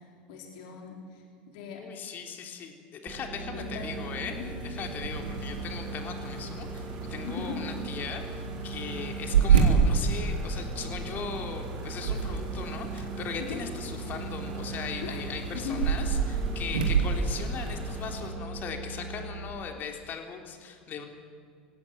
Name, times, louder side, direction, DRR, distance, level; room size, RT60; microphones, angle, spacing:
voice 1, 0.0-1.8 3.3-4.5 7.2-7.6 13.4-13.6 15.0-15.2 15.5-15.8, left 7 dB, 60° left, 1 dB, 4.2 m, -39 dB
voice 2, 1.8-4.3 4.6-21.0, left 6 dB, 40° left, 4 dB, 3.6 m, -39 dB
sound 1, 3.1-19.5, right 3 dB, 30° right, 2.8 m, -39 dB
sound 2, 3.5-18.3, right 6 dB, 80° right, 2.9 m, -30 dB
sound 3, 5.1-18.3, right 1 dB, 55° right, 5.8 m, -47 dB
21.5 x 16.5 x 9.4 m, 2.3 s
hypercardioid pair, 80°, 5 cm